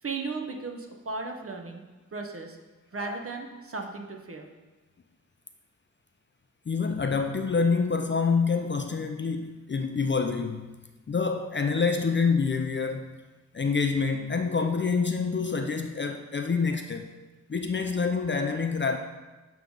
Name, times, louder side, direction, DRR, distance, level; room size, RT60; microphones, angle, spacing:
voice 1, 0.0-1.8 2.1-2.6 2.9-4.5, right 3 dB, 50° right, 3 dB, 0.8 m, -36 dB
voice 2, 6.7-10.7 11.1-13.2 13.5-17.0 17.5-19.0, left 5 dB, 40° left, 5 dB, 0.4 m, -27 dB
7.5 x 3.2 x 5.1 m, 1.2 s
wide cardioid pair, 85°, 29 cm